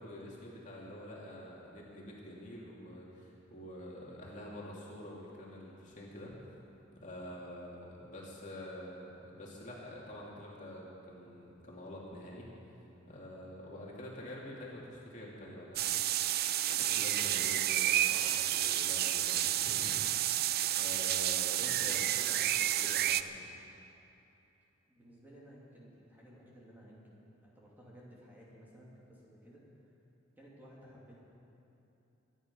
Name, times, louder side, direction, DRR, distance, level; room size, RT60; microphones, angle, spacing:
voice 1, 0.0-6.3 7.0-12.5 13.1-15.8 16.7-20.0 20.3-23.4, left 1 dB, 40° left, -4 dB, 2.6 m, -47 dB
sound 1, 15.8-23.2, right 12 dB, 50° right, 0.4 m, -30 dB
voice 2, 24.9-29.6 30.4-31.2, equal, 10° right, -6 dB, 2.9 m, -56 dB
24.5 x 10.0 x 5.5 m, 2.9 s
head